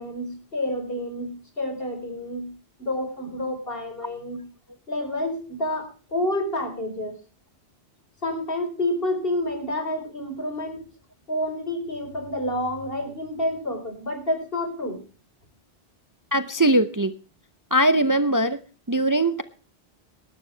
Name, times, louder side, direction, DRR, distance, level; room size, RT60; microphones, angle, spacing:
voice 1, 0.0-2.5 2.8-4.4 4.9-7.2 8.2-10.8 11.3-15.0, left 1 dB, 60° left, 5 dB, 4.7 m, -29 dB
voice 2, 16.3-17.1 17.7-18.6 18.9-19.4, right 1 dB, 20° right, 11 dB, 0.7 m, -20 dB
19.0 x 12.0 x 3.3 m, 0.36 s
omnidirectional pair, 1.1 m